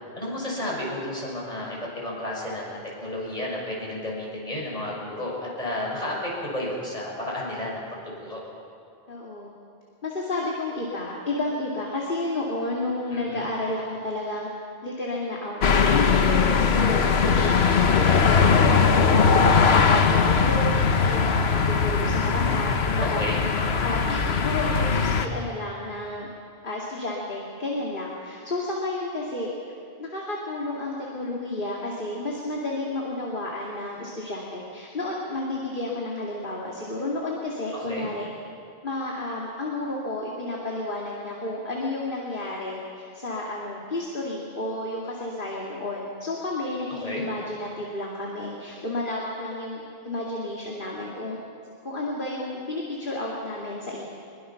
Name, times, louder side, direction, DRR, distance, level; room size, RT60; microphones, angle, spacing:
voice 1, 0.1-7.8 8.2-8.4 13.1-13.5 23.0-23.8 37.7-38.1 46.9-47.3, left 1 dB, 40° left, -4 dB, 6.2 m, -32 dB
voice 2, 9.1-9.5 10.0-14.5 14.8-18.9 19.2-23.2 23.8-26.3 26.6-29.5 30.0-38.3 38.8-51.4 51.8-54.0, left 2 dB, 55° left, -3 dB, 2.6 m, -31 dB
sound 1, 15.6-25.3, left 5 dB, 80° left, 1.3 m, -20 dB
23.0 x 22.5 x 5.9 m, 2.4 s
omnidirectional pair, 1.1 m